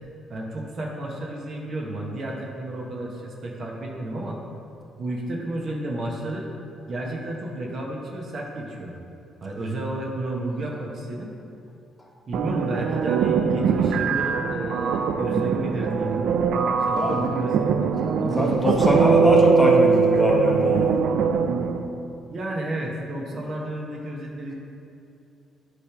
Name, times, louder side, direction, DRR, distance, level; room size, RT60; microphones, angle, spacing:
voice 1, 0.3-4.4 5.0-6.5 6.8-8.9 9.4-11.3 12.3-16.2 16.8-17.9 18.1-19.4 22.3-24.5, right 1 dB, 55° right, -1 dB, 1.1 m, -31 dB
sound 1, 12.3-21.9, right 6 dB, 75° right, 0.4 m, -22 dB
voice 2, 18.4-20.9, equal, 10° left, -2 dB, 1.2 m, -21 dB
8.5 x 3.2 x 5.9 m, 2.6 s
cardioid pair, 90°, 0 cm